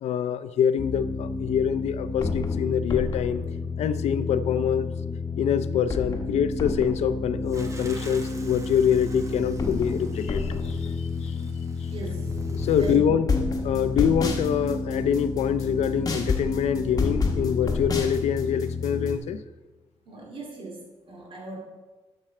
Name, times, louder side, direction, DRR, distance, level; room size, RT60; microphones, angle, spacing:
voice 1, 0.0-3.4 3.8-4.9 5.4-11.4 12.5-13.3 13.6-19.4, left 8 dB, 75° left, 11 dB, 0.5 m, -25 dB
sound 1, 0.8-19.2, left 3 dB, 35° left, 1.1 m, -29 dB
sound 2, 7.5-13.0, right 2 dB, 25° right, 1.0 m, -43 dB
voice 2, 11.9-12.3 12.7-13.1 20.1-21.6, right 4 dB, 50° right, -1 dB, 2.4 m, -38 dB
11.5 x 6.2 x 4.3 m, 1.2 s
cardioid pair, 125°, 11 cm